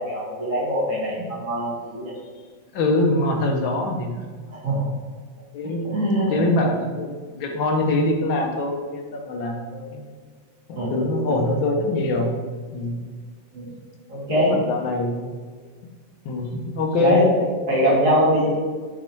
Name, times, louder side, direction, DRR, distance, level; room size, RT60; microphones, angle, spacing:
voice 1, 0.0-2.1 4.5-4.9 5.8-6.5 10.7-10.9 13.5-13.7 14.1-14.6 17.0-17.3 17.7-18.6, equal, 45° right, -7 dB, 2.3 m, -22 dB
voice 2, 2.7-4.1 5.5-10.0 10.7-12.3 12.7-13.0 14.3-15.4 16.2-17.5, left 2 dB, 75° left, 2 dB, 1.5 m, -24 dB
6.2 x 3.8 x 4.5 m, 1.5 s
omnidirectional pair, 2.1 m